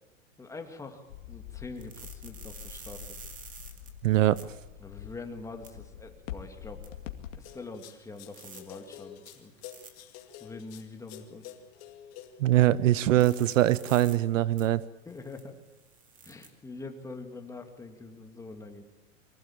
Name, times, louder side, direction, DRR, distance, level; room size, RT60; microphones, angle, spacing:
voice 1, 0.4-3.2 4.8-6.8 7.3-9.5 10.4-11.5 15.1-15.6 16.2-18.8, left 3 dB, 10° left, 5 dB, 2.0 m, -44 dB
sound 1, 1.1-7.4, left 11 dB, 65° left, 2.3 m, -45 dB
sound 2, 1.8-4.4 5.6-5.7 6.8-6.9 8.2-8.6 9.3-9.9 13.2-14.1 14.6-14.7 15.1-16.5, right 6 dB, 20° right, 2.4 m, -49 dB
voice 2, 4.0-4.4 12.4-14.8, right 14 dB, 75° right, 19 dB, 0.9 m, -22 dB
sound 3, 7.4-12.5 13.3-13.8, left 11 dB, 40° left, 2.1 m, -49 dB
24.0 x 16.0 x 8.7 m, 1.0 s
supercardioid pair, 145°, 39 cm